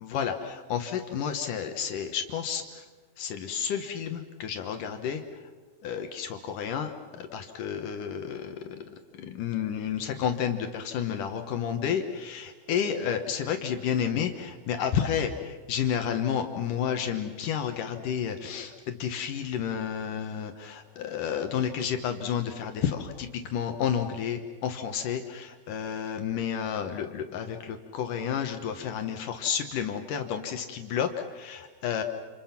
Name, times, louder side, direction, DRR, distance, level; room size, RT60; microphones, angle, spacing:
voice 1, 0.0-2.6 3.2-5.2 5.8-8.8 9.2-32.0, left 8 dB, 80° left, 6 dB, 1.9 m, -31 dB
29.0 x 28.0 x 5.9 m, 1.4 s
omnidirectional pair, 5.7 m